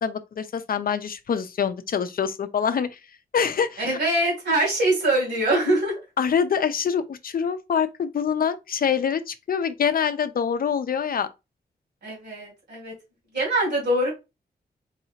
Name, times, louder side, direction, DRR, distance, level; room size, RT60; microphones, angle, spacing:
voice 1, 0.0-3.0 3.3-4.0 6.2-11.3, left 7 dB, 60° left, 0.5 m, -25 dB
voice 2, 3.8-6.0 12.0-12.9 13.3-14.1, right 1 dB, 80° right, 2.5 m, -23 dB
4.0 x 2.8 x 2.8 m
cardioid pair, 75°, 17 cm